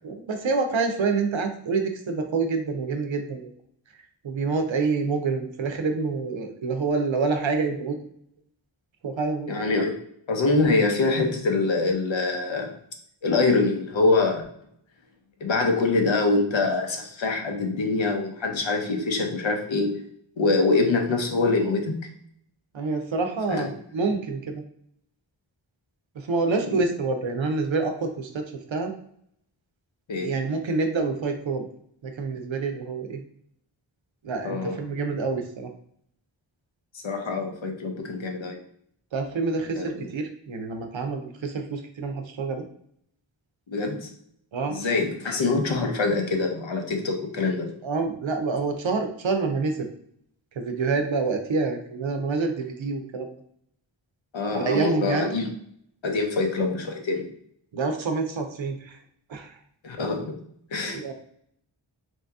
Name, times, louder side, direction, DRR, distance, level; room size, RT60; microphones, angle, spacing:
voice 1, 0.0-3.5 4.2-8.0 9.0-9.5 22.7-24.6 26.1-28.9 30.1-31.7 32.0-33.2 34.2-35.7 39.1-42.7 44.5-44.8 47.8-49.9 50.5-53.4 54.5-55.3 57.7-59.0 59.3-59.6 60.9-61.1, right 4 dB, 70° right, 5 dB, 0.7 m, -27 dB
voice 2, 9.5-10.0 10.3-12.7 13.2-14.4 15.4-20.0 20.4-22.1 23.5-23.7 30.1-30.3 34.4-34.8 37.0-38.6 39.8-39.9 43.7-44.1 44.7-47.7 54.3-55.5 56.0-57.3 59.8-60.4 60.7-61.1, left 3 dB, 70° left, 3 dB, 0.8 m, -24 dB
3.0 x 2.7 x 3.4 m, 0.67 s
wide cardioid pair, 45°, 47 cm